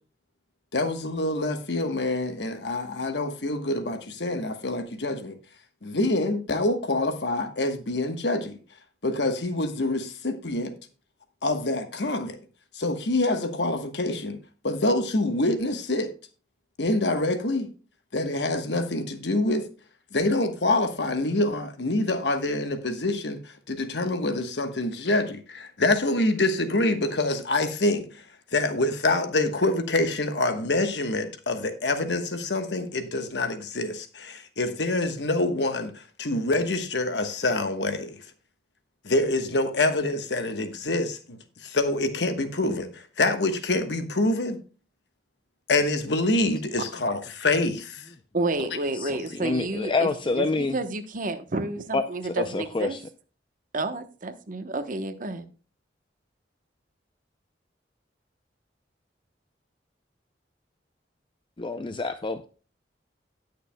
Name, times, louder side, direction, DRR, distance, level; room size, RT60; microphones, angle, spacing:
voice 1, 0.7-5.4 5.8-8.6 9.0-10.7 11.4-12.4 12.7-14.4 14.6-16.1 16.8-17.7 18.1-19.7 20.1-23.4 23.7-28.2 28.5-38.2 39.0-44.6 45.7-47.8, left 2 dB, 70° left, 1.2 m, -26 dB
voice 2, 48.3-50.1 50.4-53.0 53.7-55.5, right 2 dB, 50° right, 1.0 m, -30 dB
voice 3, 49.0-50.8 51.9-53.0 61.6-62.5, left 3 dB, 30° left, 0.5 m, -27 dB
18.5 x 6.7 x 2.2 m
head